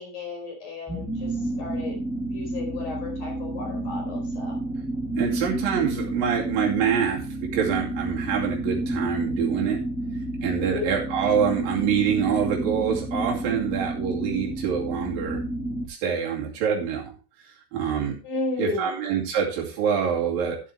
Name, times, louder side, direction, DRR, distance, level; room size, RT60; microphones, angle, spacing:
voice 1, 0.0-2.0 2.3-4.6 10.6-10.9 18.2-18.9, left 3 dB, 55° left, 1 dB, 6.0 m, -33 dB
sound 1, 0.9-15.9, right 1 dB, 5° right, 0.6 m, -30 dB
voice 2, 5.2-9.8 10.4-15.4 15.9-17.1 17.7-18.2 18.6-20.6, right 7 dB, 70° right, -2 dB, 4.4 m, -25 dB
14.0 x 7.7 x 3.3 m, 0.34 s
omnidirectional pair, 4.2 m